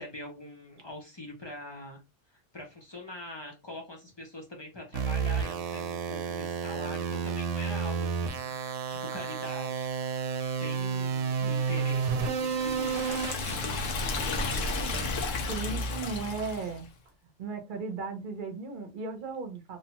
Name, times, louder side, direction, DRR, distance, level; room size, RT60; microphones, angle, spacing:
voice 1, 0.0-2.0 2.5-8.5 8.9-9.9 10.6-13.2, left 1 dB, 40° left, 0 dB, 0.4 m, -43 dB
sound 1, 4.9-14.0, right 6 dB, 75° right, 0.9 m, -31 dB
Liquid, 12.2-16.8, left 3 dB, 80° left, 1.0 m, -33 dB
voice 2, 15.5-16.9 17.4-19.8, right 4 dB, 50° right, 4 dB, 0.6 m, -36 dB
2.9 x 2.0 x 2.8 m, 0.26 s
omnidirectional pair, 1.3 m